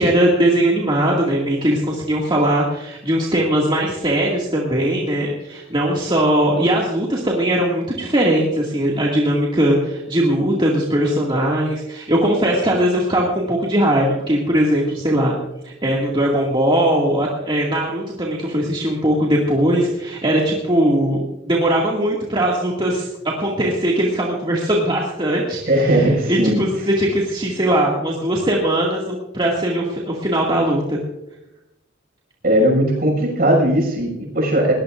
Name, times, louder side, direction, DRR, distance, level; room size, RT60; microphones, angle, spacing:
voice 1, 0.0-15.3 15.6-31.0, right 1 dB, 25° right, -3 dB, 2.2 m, -20 dB
voice 2, 25.7-26.7 32.4-34.7, right 1 dB, 50° right, 1 dB, 6.2 m, -18 dB
21.5 x 19.0 x 2.6 m, 0.91 s
head